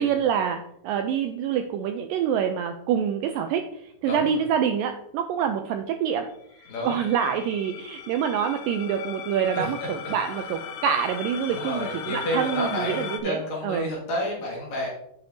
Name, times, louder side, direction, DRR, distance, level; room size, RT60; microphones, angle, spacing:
voice 1, 0.0-6.3 6.6-13.9, right 8 dB, 80° right, 6 dB, 2.0 m, -26 dB
voice 2, 4.1-4.4 6.7-7.0 9.5-10.1 11.5-14.9, left 1 dB, 55° left, -3 dB, 2.7 m, -31 dB
sound 1, 6.6-13.2, left 8 dB, 80° left, 2.0 m, -37 dB
9.1 x 6.8 x 2.7 m, 0.75 s
omnidirectional pair, 4.4 m